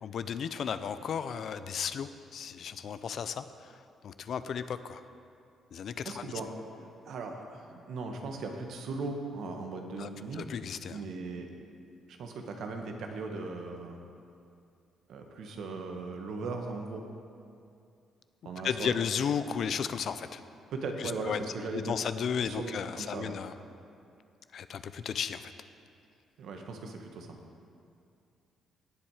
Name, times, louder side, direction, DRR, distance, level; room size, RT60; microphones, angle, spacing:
voice 1, 0.0-3.4 4.0-5.0 5.7-6.3 10.0-10.1 10.4-11.0 18.6-20.4 21.0-21.4 21.7-23.5 24.5-25.5, left 7 dB, 60° left, 12 dB, 0.6 m, -34 dB
voice 2, 6.0-6.5 6.7-10.5 10.9-11.5 12.1-14.0 15.1-17.0 18.4-19.0 20.7-21.9 22.4-23.3 26.4-27.4, right 3 dB, 75° right, 3 dB, 1.5 m, -38 dB
17.5 x 7.4 x 4.9 m, 2.5 s
cardioid pair, 90°, 0 cm